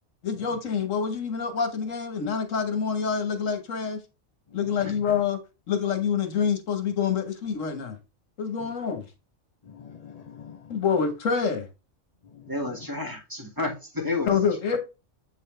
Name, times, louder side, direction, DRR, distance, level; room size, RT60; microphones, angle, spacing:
voice 1, 0.2-4.0 4.5-5.4 5.7-8.0 8.4-9.0 10.7-11.7 14.3-14.8, left 6 dB, 75° left, 1.5 m, -26 dB
voice 2, 4.5-4.9 8.6-8.7 9.6-10.8 12.2-12.9, left 7 dB, 45° left, 0.5 m, -46 dB
voice 3, 12.5-14.3, left 3 dB, 15° right, 1.9 m, -31 dB
7.8 x 4.1 x 3.2 m
omnidirectional pair, 1.3 m